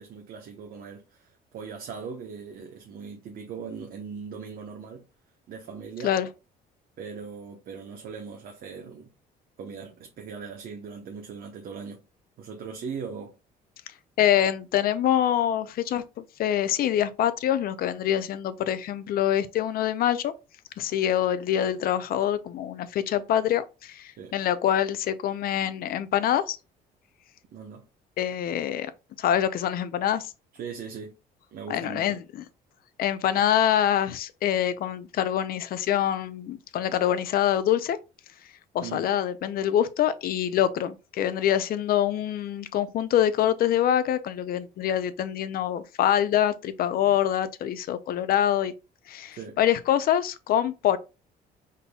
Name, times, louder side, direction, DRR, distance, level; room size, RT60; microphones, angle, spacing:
voice 1, 0.0-5.1 5.5-6.1 7.0-9.1 9.6-12.0 12.4-13.3 24.2-24.3 27.5-27.8 30.5-31.1 31.5-32.2 38.8-39.1 49.3-49.6, right 6 dB, 60° right, 1.0 m, -39 dB
voice 2, 14.2-20.3 20.8-26.6 28.2-28.9 29.2-30.3 31.7-32.4 33.0-38.0 38.7-48.7 49.1-51.0, left 10 dB, 60° left, 0.6 m, -25 dB
5.2 x 4.1 x 2.3 m
cardioid pair, 110°, 17 cm